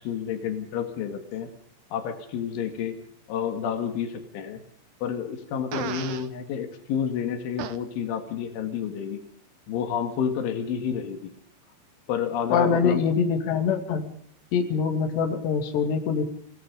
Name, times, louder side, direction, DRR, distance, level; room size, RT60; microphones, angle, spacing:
voice 1, 0.0-1.5 1.9-3.0 3.3-4.6 5.0-9.2 9.7-11.3 12.1-13.0, left 8 dB, 85° left, 5 dB, 4.4 m, -30 dB
Fart, 5.7-6.3 7.6-7.8, right 10 dB, 85° right, 1.7 m, -34 dB
voice 2, 12.5-14.0 14.5-16.3, left 6 dB, 65° left, 5 dB, 4.6 m, -24 dB
28.0 x 18.0 x 5.3 m, 0.64 s
omnidirectional pair, 5.4 m